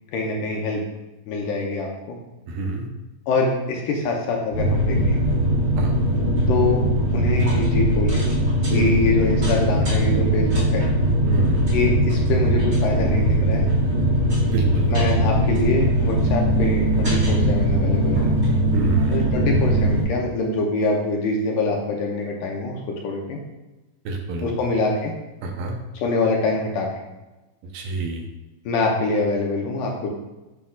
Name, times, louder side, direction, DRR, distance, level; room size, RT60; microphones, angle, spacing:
voice 1, 0.1-0.8 1.3-2.2 3.3-5.2 6.5-6.8 7.1-8.3 8.7-10.9 11.7-13.7 14.9-18.3 19.1-23.4 24.4-25.1 25.9-27.0 28.7-30.1, left 3 dB, 75° left, 0 dB, 2.1 m, -24 dB
voice 2, 2.5-2.9 5.8-5.9 8.7-8.9 11.2-11.7 14.4-14.9 18.7-19.2 24.1-24.6 25.4-25.8 27.7-28.2, right 2 dB, 75° right, 1 dB, 2.3 m, -28 dB
sound 1, 4.5-20.0, equal, 35° right, 1.8 m, -20 dB
sound 2, 16.1-20.8, right 5 dB, 60° right, 1.4 m, -29 dB
8.5 x 5.6 x 2.3 m, 1.1 s
omnidirectional pair, 4.1 m